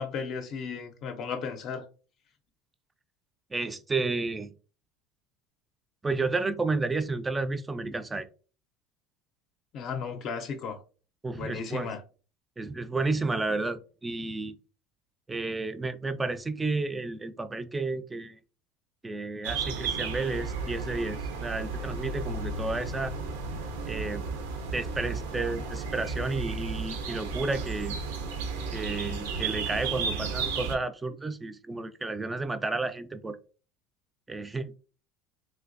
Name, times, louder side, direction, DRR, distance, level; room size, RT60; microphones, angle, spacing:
voice 1, 0.0-1.9 9.7-10.8 11.3-12.0, left 5 dB, 50° left, 0.4 m, -35 dB
voice 2, 3.5-4.5 6.0-8.3 11.2-11.9 12.6-14.6 15.3-18.4 19.0-23.1 23.9-24.3 24.7-28.0 28.7-33.4 34.3-34.8, right 3 dB, 15° right, 0.3 m, -31 dB
sound 1, 19.4-30.8, right 4 dB, 90° right, 0.5 m, -33 dB
3.2 x 2.7 x 2.5 m
supercardioid pair, 125°, 0 cm